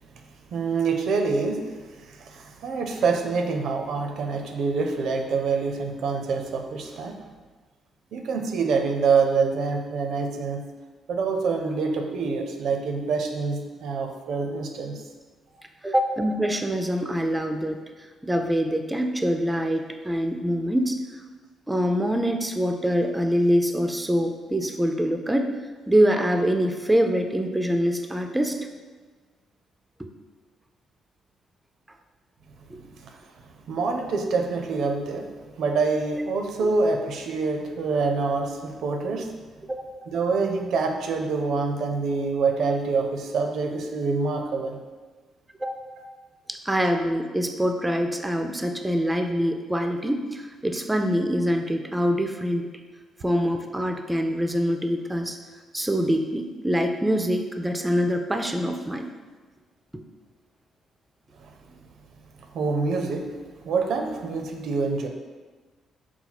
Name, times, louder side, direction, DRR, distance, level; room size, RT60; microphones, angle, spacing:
voice 1, 0.5-1.6 1.9-7.2 8.1-10.6 11.1-15.0 33.0-33.1 33.7-35.3 35.5-39.3 40.1-44.8 46.0-46.1 61.4-61.5 62.5-63.3 63.6-65.1, right 4 dB, 70° right, 3 dB, 0.5 m, -26 dB
voice 2, 15.8-21.0 21.7-25.5 25.9-28.6 32.7-32.8 36.6-36.7 39.7-39.9 45.6-45.7 46.5-52.7 53.2-55.4 55.7-59.1, equal, 10° right, 5 dB, 0.3 m, -24 dB
4.2 x 2.3 x 4.0 m, 1.4 s
cardioid pair, 90°, 0 cm